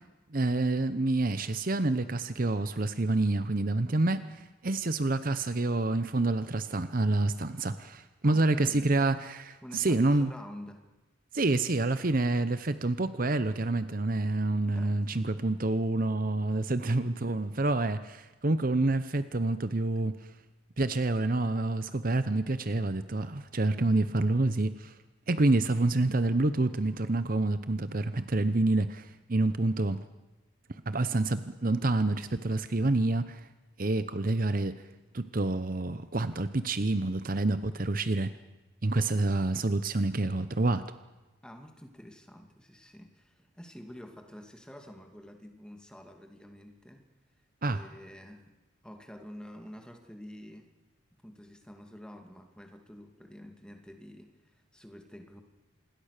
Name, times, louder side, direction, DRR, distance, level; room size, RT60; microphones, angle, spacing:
voice 1, 0.3-10.3 11.3-20.3 20.8-25.0 25.3-30.0 30.7-33.5 33.8-34.8 35.1-38.3 38.8-40.8 47.6-47.8, right 2 dB, 45° right, 12 dB, 0.8 m, -28 dB
voice 2, 8.2-8.9 9.6-10.8 14.7-15.0 16.9-17.1 41.4-47.1 47.7-48.5 48.8-50.7 51.2-55.4, equal, 5° left, 5 dB, 2.4 m, -48 dB
27.0 x 21.0 x 6.7 m, 1.1 s
head